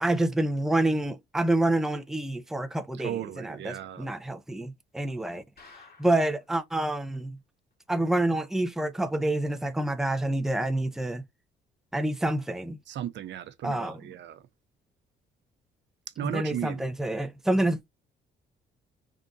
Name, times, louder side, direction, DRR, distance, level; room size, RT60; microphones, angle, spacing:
voice 1, 0.0-5.4 6.0-7.4 7.9-11.2 11.9-12.8 13.6-14.0 16.2-17.8, right 1 dB, ahead, 0.5 m, -27 dB
voice 2, 3.0-4.1 12.9-14.4 16.2-16.9, right 11 dB, 65° right, 0.6 m, -35 dB
sound 1, 5.6-6.4 6.8-6.9 7.1-7.2 7.7-7.8, left 4 dB, 50° left, 2.0 m, -53 dB
3.6 x 2.5 x 3.9 m
cardioid pair, 90°, 20 cm